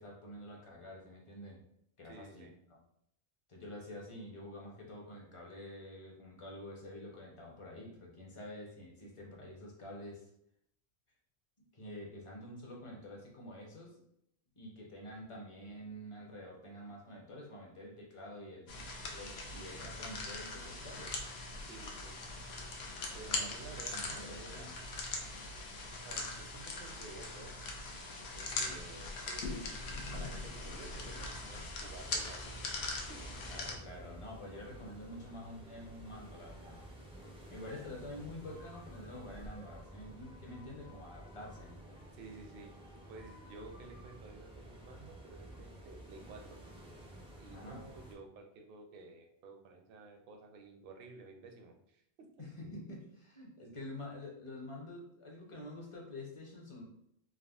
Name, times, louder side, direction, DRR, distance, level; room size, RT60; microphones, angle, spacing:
voice 1, 0.0-1.6 2.0-2.4 3.5-10.3 11.7-14.0 14.6-21.2 23.3-23.5 23.9-24.7 33.5-36.8 37.5-41.7 47.5-47.8 52.4-56.8, left 1 dB, 35° left, -2 dB, 0.7 m, -48 dB
voice 2, 2.0-2.5 21.7-22.1 23.1-24.7 26.0-27.7 28.3-29.7 30.1-33.4 42.1-42.7 43.1-46.6 47.4-52.3, right 3 dB, 65° right, 3 dB, 0.7 m, -53 dB
sound 1, 18.7-33.7, left 3 dB, 80° left, 0.8 m, -41 dB
sound 2, 30.0-48.1, right 1 dB, 10° right, 0.4 m, -52 dB
3.5 x 2.1 x 2.3 m, 0.74 s
omnidirectional pair, 1.0 m